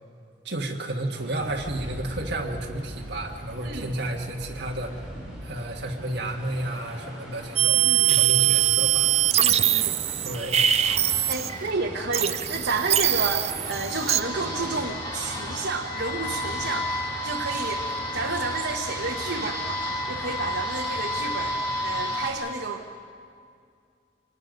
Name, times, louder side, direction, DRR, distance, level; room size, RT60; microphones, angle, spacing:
voice 1, 0.4-5.1 5.4-9.1 10.2-10.6, right 1 dB, 70° right, -1 dB, 1.6 m, -32 dB
sound 1, 1.2-14.9, equal, 5° right, 4.5 m, -41 dB
sound 2, 7.6-11.7 12.1-14.2, right 11 dB, 35° right, 0.4 m, -22 dB
voice 2, 7.7-8.1 9.4-10.0 10.8-22.9, right 3 dB, 85° right, 0 dB, 1.2 m, -31 dB
sound 3, 10.8-22.3, left 1 dB, 25° left, 2.5 m, -32 dB
26.0 x 19.5 x 5.2 m, 2.3 s
head